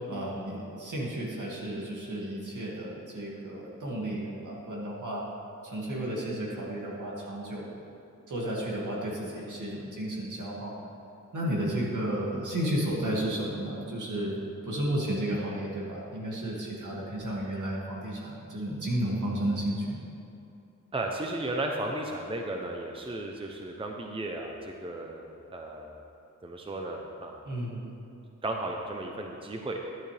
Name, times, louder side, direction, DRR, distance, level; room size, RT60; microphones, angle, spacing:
voice 1, 0.1-5.2 5.6-7.7 8.3-10.7 11.3-20.0 27.4-27.9, right 1 dB, 65° right, -4 dB, 2.3 m, -32 dB
voice 2, 20.9-26.0 26.4-27.4 28.4-29.8, right 2 dB, 15° right, 1 dB, 0.7 m, -35 dB
11.5 x 11.0 x 3.4 m, 2.7 s
wide cardioid pair, 130°, 33 cm